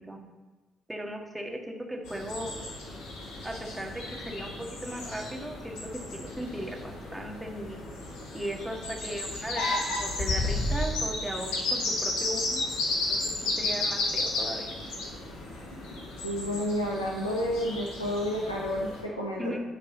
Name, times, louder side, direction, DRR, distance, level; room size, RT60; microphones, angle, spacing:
voice 1, 0.9-2.5 3.4-7.8 8.3-13.2 13.6-14.8 19.4-19.6, equal, 10° right, 1 dB, 1.8 m, -37 dB
sound 1, 2.0-19.0, left 2 dB, 65° left, 1.5 m, -33 dB
voice 2, 16.2-19.5, equal, 90° left, -3 dB, 1.2 m, -30 dB
9.9 x 4.9 x 6.6 m, 1.3 s
figure-of-eight pair, 40°, 0 cm